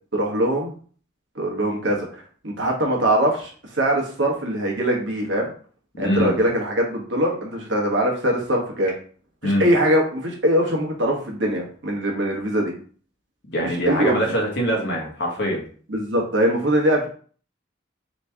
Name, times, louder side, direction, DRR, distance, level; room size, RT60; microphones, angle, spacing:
voice 1, 0.1-0.7 1.3-5.5 6.0-8.9 9.4-12.7 13.6-14.2 15.9-17.1, right 1 dB, 65° right, 0 dB, 1.2 m, -22 dB
voice 2, 5.9-6.4 9.4-9.6 13.5-15.6, equal, 60° left, -1 dB, 1.4 m, -23 dB
4.1 x 3.1 x 3.5 m, 0.43 s
head